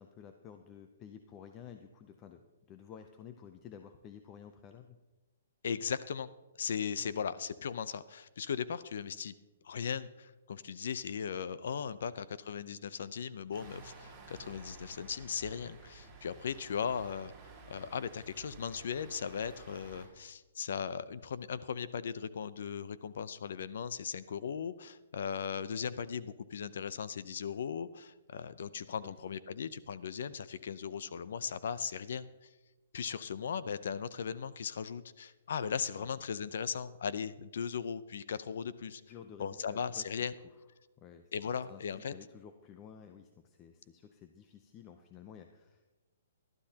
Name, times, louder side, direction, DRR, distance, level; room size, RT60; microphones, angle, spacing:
voice 1, 0.0-5.0 7.0-7.1 29.0-29.2 35.9-36.1 39.1-40.6 41.0-41.3 41.7-46.0, left 8 dB, 20° left, 7 dB, 0.6 m, -52 dB
voice 2, 5.6-6.3 6.6-9.3 9.6-17.3 17.7-32.5 32.9-39.0 39.4-40.3 41.3-42.1, left 7 dB, 60° left, 15 dB, 0.6 m, -38 dB
sound 1, 13.5-20.1, right 3 dB, 10° right, 5.5 m, -53 dB
19.5 x 12.5 x 2.9 m, 1.1 s
hypercardioid pair, 165°, 0 cm